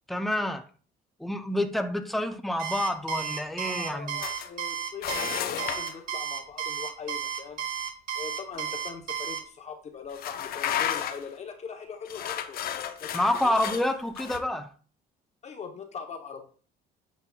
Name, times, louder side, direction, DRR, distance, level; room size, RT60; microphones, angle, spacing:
voice 1, 0.1-0.6 1.2-4.2 13.1-14.7, left 1 dB, ahead, 0.6 m, -28 dB
Alarm, 2.6-9.4, right 9 dB, 55° right, 1.2 m, -33 dB
voice 2, 3.6-7.7 8.2-12.6 13.0-13.5 15.4-16.4, left 6 dB, 40° left, 0.9 m, -41 dB
sound 1, 4.2-4.5 5.0-6.0 8.5-8.7 9.2-9.3 10.1-11.3 12.1-14.4, left 10 dB, 60° left, 0.6 m, -33 dB
8.2 x 5.3 x 2.3 m
cardioid pair, 110°, 17 cm